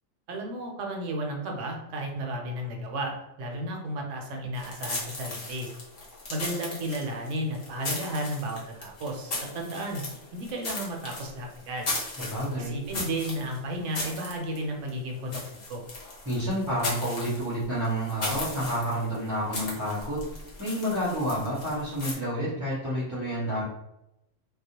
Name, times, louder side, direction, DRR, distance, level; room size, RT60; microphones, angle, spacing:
voice 1, 0.3-5.7 6.3-10.0 10.3-12.0 12.6-15.4 15.7-15.8, right 1 dB, 70° right, 1 dB, 0.9 m, -33 dB
sound 1, 4.5-22.1, left 2 dB, 55° left, 0.9 m, -37 dB
voice 2, 12.2-12.8 16.2-20.2 20.6-23.6, equal, 20° right, -10 dB, 0.5 m, -29 dB
2.3 x 2.0 x 2.8 m, 0.85 s
omnidirectional pair, 1.4 m